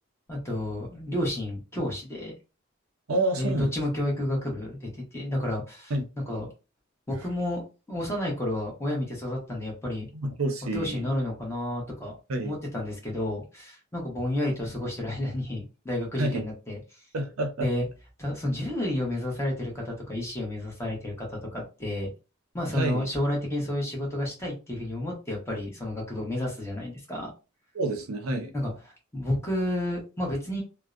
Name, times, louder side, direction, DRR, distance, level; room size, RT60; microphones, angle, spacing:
voice 1, 0.3-2.3 3.4-5.9 6.3-6.5 7.1-10.1 10.7-17.0 17.6-17.9 18.2-22.1 22.5-27.3 28.5-30.6, left 1 dB, 15° left, 0.8 m, -31 dB
voice 2, 3.1-3.7 5.9-6.0 10.1-11.1 12.3-12.5 16.2-16.4 17.1-17.7 22.7-23.1 27.7-28.5, right 2 dB, 85° right, 0.6 m, -28 dB
2.5 x 2.0 x 2.4 m
head